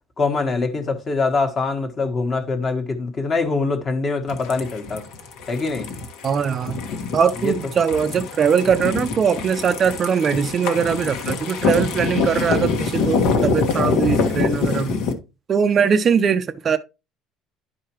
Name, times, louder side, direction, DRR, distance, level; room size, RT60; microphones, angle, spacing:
voice 1, 0.2-5.0 5.5-5.9 7.4-7.5, left 3 dB, 30° left, 1.3 m, -23 dB
sound 1, 4.3-15.1, left 5 dB, 70° left, 1.4 m, -25 dB
voice 2, 6.2-6.8 7.1-15.0 15.5-16.8, right 7 dB, 30° right, 0.5 m, -21 dB
11.0 x 4.7 x 3.0 m
cardioid pair, 150°, 0 cm